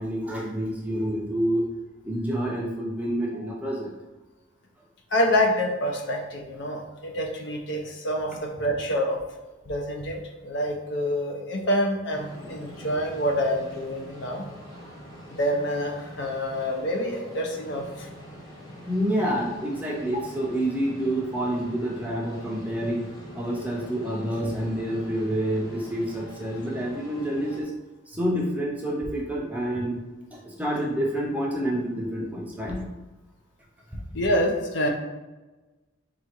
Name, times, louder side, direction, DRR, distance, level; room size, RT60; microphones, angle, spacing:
voice 1, 0.0-1.6 2.0-3.9 12.4-12.6 18.9-23.0 23.3-27.7 28.1-30.0 30.3-32.9 33.9-34.0, right 1 dB, 5° right, -3 dB, 0.5 m, -28 dB
voice 2, 5.1-9.2 9.7-14.4 15.3-18.1 34.1-34.9, equal, 60° left, 1 dB, 0.5 m, -27 dB
sound 1, 12.1-27.6, equal, 20° left, 0.8 m, -44 dB
4.1 x 2.4 x 2.9 m, 1.2 s
head